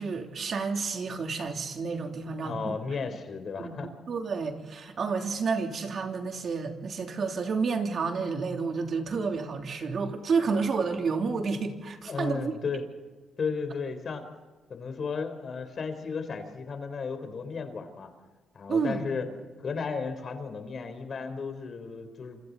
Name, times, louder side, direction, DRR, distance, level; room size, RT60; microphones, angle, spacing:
voice 1, 0.0-2.8 3.6-3.7 4.1-12.6 18.7-19.1, right 4 dB, 50° right, 3 dB, 3.2 m, -30 dB
voice 2, 2.4-3.9 12.1-12.8 13.4-14.2 14.7-18.1 18.5-19.3 19.6-22.4, left 5 dB, 50° left, 8 dB, 4.1 m, -34 dB
28.0 x 27.5 x 4.2 m, 1.3 s
cardioid pair, 110°, 0 cm